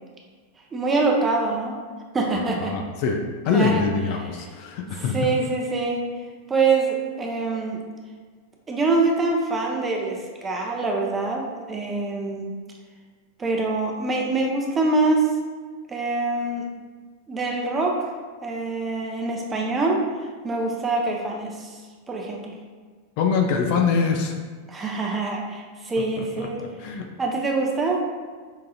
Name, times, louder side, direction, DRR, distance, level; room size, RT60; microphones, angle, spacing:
voice 1, 0.7-1.8 2.1-2.8 3.5-3.8 4.2-4.3 5.1-6.0 6.5-7.8 8.7-12.5 13.4-15.3 15.9-16.6 17.3-18.0 18.4-20.0 20.4-21.8 22.1-22.5 24.7-26.6 27.2-28.0, right 3 dB, 20° right, 0 dB, 0.7 m, -24 dB
voice 2, 2.6-5.2 23.2-24.3 26.2-27.1, left 5 dB, 45° left, 3 dB, 0.4 m, -24 dB
5.4 x 3.7 x 2.4 m, 1.5 s
figure-of-eight pair, 90°, 0 cm